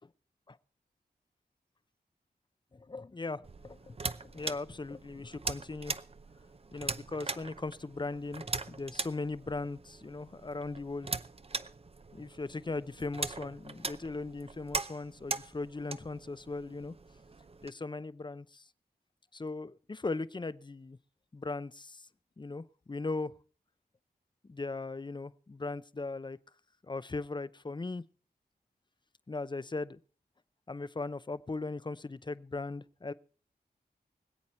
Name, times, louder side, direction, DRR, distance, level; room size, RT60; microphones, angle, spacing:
voice 1, 2.7-6.0 6.7-11.1 12.1-16.9 17.6-18.6 19.3-21.0 21.3-22.1 22.4-23.3 24.4-26.4 26.9-28.0 29.3-30.0 30.7-33.1, left 3 dB, 30° left, 0.6 m, -38 dB
sound 1, 3.4-17.7, right 4 dB, 35° right, 0.6 m, -41 dB
25.0 x 8.4 x 4.3 m
wide cardioid pair, 65°, 17 cm